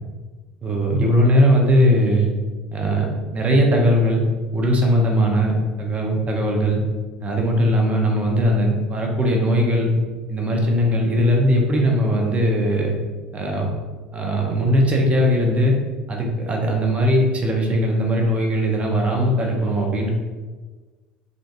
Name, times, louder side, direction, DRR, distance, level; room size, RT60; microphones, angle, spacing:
voice 1, 0.6-2.3 2.7-4.2 4.5-6.8 7.2-9.9 10.3-12.9 13.3-13.7 14.1-15.8 16.1-20.1, equal, 30° right, 0 dB, 0.7 m, -19 dB
3.8 x 2.4 x 2.5 m, 1.3 s
hypercardioid pair, 65°, 4 cm